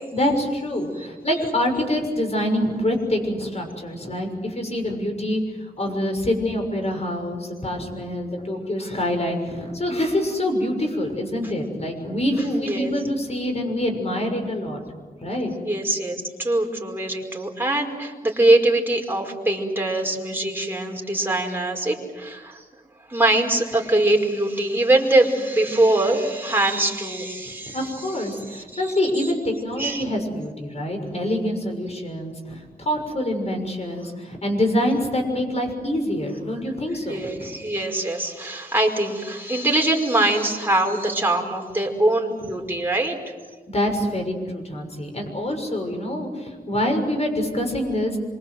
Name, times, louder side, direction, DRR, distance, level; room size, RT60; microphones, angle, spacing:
voice 1, 0.1-14.8 15.2-15.5 27.7-37.3 43.7-48.2, left 1 dB, 40° left, 4 dB, 6.5 m, -25 dB
voice 2, 15.7-22.6 23.1-27.9 28.5-28.9 29.8-30.0 37.1-43.2, right 2 dB, 15° right, 0 dB, 5.1 m, -22 dB
26.5 x 24.5 x 8.0 m, 1.3 s
wide cardioid pair, 85°, 16 cm